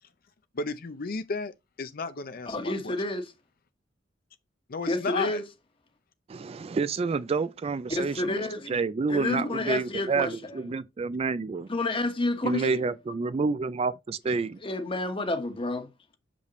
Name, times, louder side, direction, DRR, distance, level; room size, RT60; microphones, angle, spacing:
voice 1, 0.5-3.0 4.7-5.4, left 4 dB, 50° left, 0.6 m, -33 dB
voice 2, 2.5-3.3 4.8-5.4 7.9-8.8 9.1-10.6 11.7-12.9 14.6-15.9, left 2 dB, 30° left, 1.3 m, -30 dB
voice 3, 6.3-11.7 12.4-14.6, right 4 dB, 30° right, 0.3 m, -29 dB
6.7 x 5.1 x 3.1 m
head